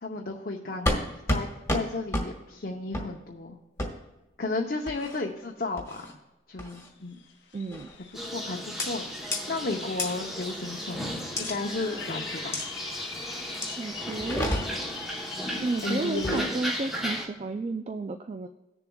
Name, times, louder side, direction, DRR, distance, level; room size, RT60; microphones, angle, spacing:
voice 1, 0.0-3.6 4.4-6.1 6.5-7.2 8.2-12.6 15.8-16.4, left 3 dB, 55° left, 0 dB, 0.8 m, -34 dB
sound 1, 0.9-1.0 1.3-1.4 1.7-1.8 2.1-2.3 2.9-3.1 3.8-3.9 4.9-5.2 5.8-6.1 6.6-6.9 7.7-8.0 8.8-8.9 9.3-9.4 10.0-10.1 11.4-11.5 12.5-12.7 13.6-13.8 14.2-14.9 16.1-16.5, left 1 dB, 15° left, 1.5 m, -29 dB
sound 2, 6.8-6.9 7.1-16.4, left 6 dB, 90° left, 1.1 m, -44 dB
voice 2, 7.5-7.9 13.8-14.5 15.6-18.5, right 3 dB, 35° right, 8 dB, 0.3 m, -32 dB
sound 3, 8.1-17.3, equal, ahead, 0.9 m, -35 dB
18.0 x 7.0 x 2.3 m, 1.0 s
head